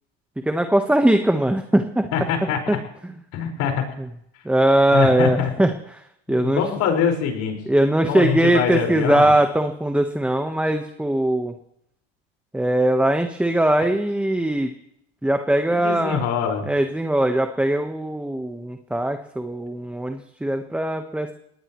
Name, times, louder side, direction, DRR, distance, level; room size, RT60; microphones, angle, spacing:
voice 1, 0.4-2.1 4.0-4.1 4.4-6.0 6.3-6.6 7.7-11.5 12.5-14.7 15.2-16.2 16.7-21.3, right 1 dB, 5° right, 6 dB, 1.2 m, -20 dB
voice 2, 2.1-2.8 3.3-3.9 4.9-5.5 6.3-7.6 8.1-9.3 15.7-16.7, left 7 dB, 55° left, 2 dB, 5.3 m, -24 dB
21.0 x 19.0 x 3.2 m, 0.75 s
supercardioid pair, 100°, 32 cm